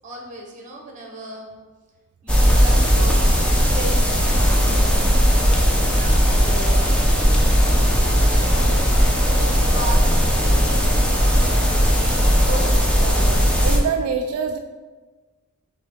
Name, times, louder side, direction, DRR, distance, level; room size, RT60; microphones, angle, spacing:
voice 1, 0.0-1.5 2.2-4.9 5.9-7.5 8.3-8.8 9.3-11.0 11.9-13.3, right 1 dB, 35° right, 0 dB, 0.9 m, -35 dB
sound 1, 2.3-13.8, equal, 5° left, 0.4 m, -17 dB
voice 2, 13.0-14.6, right 6 dB, 85° right, 8 dB, 0.3 m, -26 dB
6.1 x 2.2 x 3.5 m, 1.3 s
head